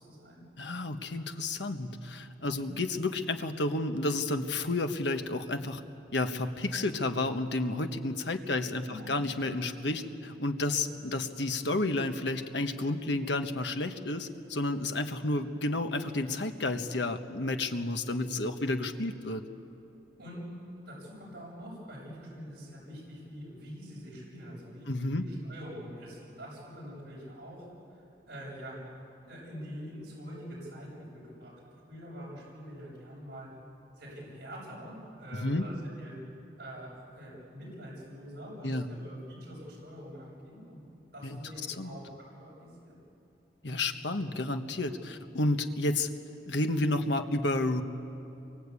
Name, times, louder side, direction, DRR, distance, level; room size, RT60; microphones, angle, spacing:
voice 1, 0.0-0.4 2.5-2.6 8.8-9.1 20.2-20.4 20.9-28.8 29.2-31.5 31.9-33.5 34.0-36.1 36.6-40.8 41.1-42.1 42.4-43.0, equal, 55° right, -5 dB, 7.7 m, -45 dB
voice 2, 0.6-5.8 6.1-19.4 24.9-25.3 35.4-35.7 38.6-38.9 41.2-41.4 41.8-41.9 43.6-46.1 46.5-47.8, left 2 dB, 75° left, 7 dB, 1.4 m, -31 dB
27.5 x 23.5 x 8.5 m, 2.8 s
head